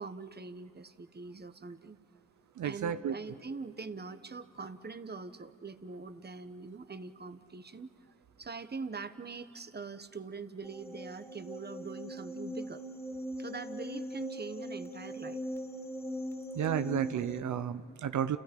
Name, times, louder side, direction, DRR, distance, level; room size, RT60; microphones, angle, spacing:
voice 1, 0.0-2.0 2.6-7.9 8.4-12.8 13.4-15.4, right 4 dB, 35° right, 12 dB, 1.2 m, -43 dB
voice 2, 2.6-3.1 16.5-18.4, right 9 dB, 85° right, 12 dB, 0.7 m, -32 dB
sound 1, 10.6-17.4, equal, 10° left, 2.7 m, -41 dB
30.0 x 29.5 x 5.3 m, 2.8 s
cardioid pair, 60°, 29 cm